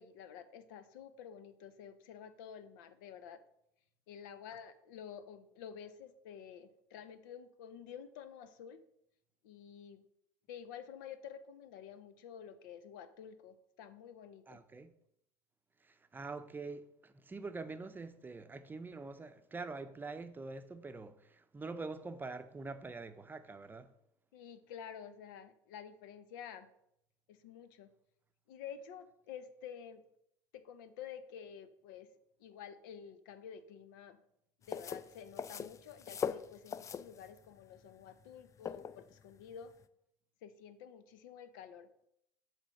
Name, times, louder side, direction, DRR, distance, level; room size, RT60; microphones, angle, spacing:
voice 1, 0.0-3.4 4.1-8.8 9.4-10.0 10.5-14.6 24.3-26.7 27.3-27.9 28.5-30.0 30.5-32.1 32.4-34.2 34.7-39.7 40.4-42.1, left 8 dB, 80° left, 0.7 m, -50 dB
voice 2, 14.5-14.9 15.8-23.9, right 3 dB, 20° right, 0.6 m, -45 dB
sound 1, 34.6-39.8, left 7 dB, 30° left, 0.4 m, -42 dB
7.4 x 3.4 x 6.3 m
supercardioid pair, 90°, 10 cm